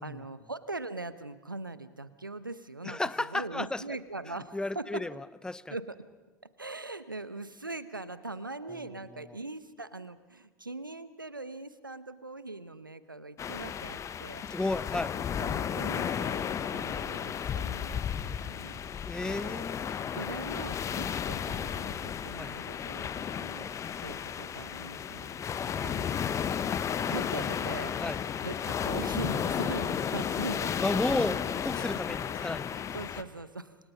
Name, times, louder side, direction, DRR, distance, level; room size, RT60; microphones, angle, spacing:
voice 1, 0.0-3.0 3.3-5.1 5.7-6.0 6.6-14.5 15.4-16.5 16.7-18.2 18.5-19.7 20.1-23.7 24.0-26.3 27.1-28.0 28.4-31.0 31.3-31.4 32.7-33.8, right 2 dB, 90° right, 14 dB, 1.1 m, -41 dB
voice 2, 2.8-3.8 4.5-5.7 8.7-8.8 9.2-9.4 14.5-15.2 19.1-20.0 22.3-22.5 25.5-26.1 28.0-28.2 30.8-32.7, left 2 dB, 5° left, 18 dB, 0.8 m, -33 dB
Rough Baltic Sea, 13.4-33.2, left 8 dB, 30° left, 1.2 m, -33 dB
29.0 x 25.5 x 5.5 m, 1.2 s
figure-of-eight pair, 80°, 11 cm